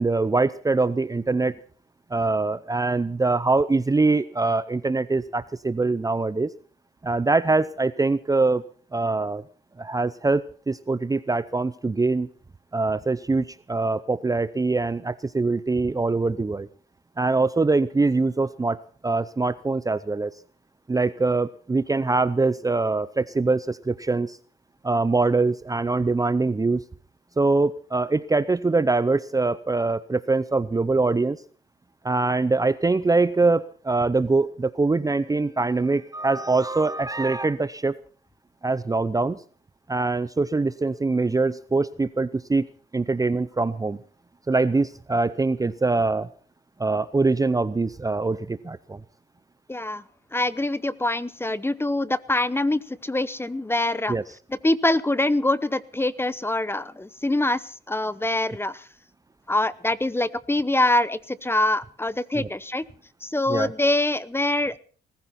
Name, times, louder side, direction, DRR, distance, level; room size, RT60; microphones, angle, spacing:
voice 1, 0.0-1.6 2.1-6.5 7.0-8.6 8.9-9.4 9.8-12.3 12.7-16.7 17.2-18.8 19.0-20.3 20.9-24.4 24.8-26.8 27.4-31.4 32.0-38.0 38.6-39.4 39.9-42.7 42.9-44.0 44.5-46.3 46.8-49.0 54.1-54.2 62.4-62.5 63.5-63.7, right 3 dB, 15° right, 16 dB, 0.7 m, -23 dB
voice 2, 49.7-50.0 50.3-54.2 54.5-58.8 59.5-62.8 63.2-64.8, left 2 dB, 10° left, 17 dB, 0.8 m, -24 dB
19.5 x 15.0 x 4.3 m, 0.42 s
cardioid pair, 90°, 20 cm